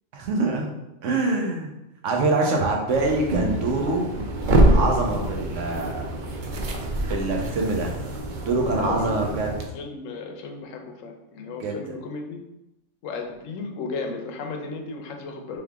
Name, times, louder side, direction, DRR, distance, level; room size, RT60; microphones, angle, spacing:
voice 1, 0.1-0.7 1.0-1.7 2.0-4.1 4.7-6.1 7.1-7.9 8.5-9.5 11.6-11.7, right 3 dB, 75° right, 1 dB, 1.1 m, -24 dB
sound 1, 2.9-9.6, right 1 dB, 50° right, 0.6 m, -25 dB
voice 2, 8.6-9.3 9.7-12.4 13.0-15.6, left 4 dB, 90° left, 3 dB, 1.0 m, -35 dB
3.6 x 3.3 x 3.5 m, 0.91 s
omnidirectional pair, 1.3 m